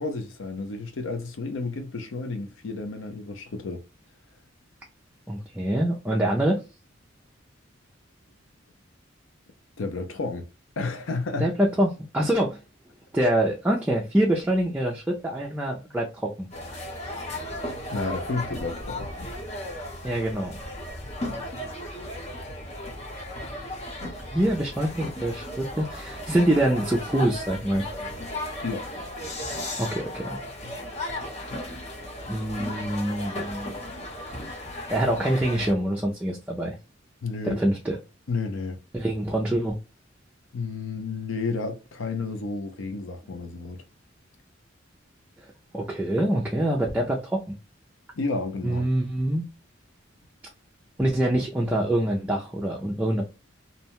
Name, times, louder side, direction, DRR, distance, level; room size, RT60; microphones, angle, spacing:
voice 1, 0.0-3.8 9.8-10.5 10.8-11.5 17.9-19.1 28.6-28.9 37.2-37.6 38.3-38.8 40.5-43.8 48.1-48.9, left 3 dB, 80° left, 0.5 m, -31 dB
voice 2, 5.3-6.6 11.4-12.6 13.1-16.5 20.0-20.6 24.3-27.8 29.8-30.3 32.3-33.8 34.9-36.7 37.4-38.0 38.9-39.8 45.7-47.5 48.6-49.5 51.0-53.2, right 1 dB, 10° right, 0.4 m, -25 dB
sound 1, 16.5-35.7, left 1 dB, 35° left, 0.8 m, -35 dB
2.7 x 2.1 x 2.9 m
head